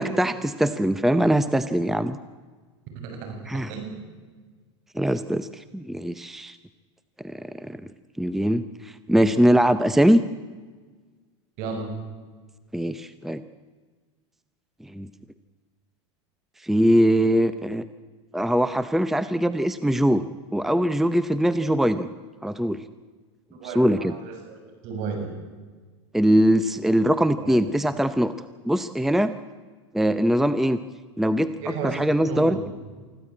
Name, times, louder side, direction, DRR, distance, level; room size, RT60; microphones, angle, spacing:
voice 1, 0.0-2.2 3.5-3.7 5.0-6.6 7.2-7.8 8.2-10.2 12.7-13.4 14.9-15.1 16.6-17.8 18.3-20.2 20.5-22.1 22.4-22.8 23.8-24.1 26.1-28.3 28.6-29.3 29.9-30.8 31.2-31.5 31.8-32.6, equal, ahead, 12 dB, 0.7 m, -22 dB
voice 2, 3.0-4.0 11.6-11.9 23.6-25.4 27.4-27.6 31.6-32.7, right 4 dB, 55° right, 4 dB, 7.1 m, -34 dB
24.5 x 15.0 x 8.7 m, 1.4 s
supercardioid pair, 120°, 15 cm